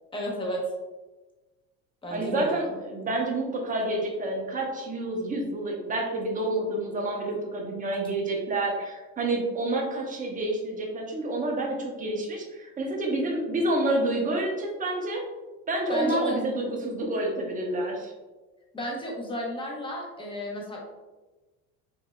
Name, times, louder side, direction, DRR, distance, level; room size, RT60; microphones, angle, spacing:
voice 1, 0.1-0.6 2.0-2.6 15.9-16.4 18.7-20.8, equal, 15° left, -2 dB, 1.1 m, -32 dB
voice 2, 2.1-15.2 15.7-18.1, right 2 dB, 25° right, 0 dB, 0.9 m, -28 dB
5.4 x 2.8 x 2.3 m, 1.2 s
supercardioid pair, 115°, 34 cm